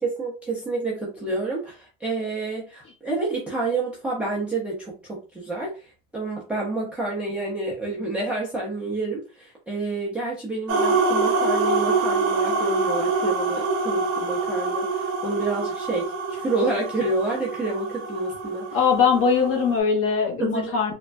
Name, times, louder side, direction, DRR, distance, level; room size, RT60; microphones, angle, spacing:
voice 1, 0.0-5.7 6.1-18.8 20.4-20.7, right 2 dB, 5° right, -4 dB, 0.4 m, -28 dB
sound 1, 10.7-19.8, right 3 dB, 40° right, 0.7 m, -25 dB
voice 2, 18.7-20.9, left 6 dB, 35° left, 2 dB, 0.8 m, -21 dB
3.3 x 2.1 x 2.4 m, 0.34 s
supercardioid pair, 150°, 39 cm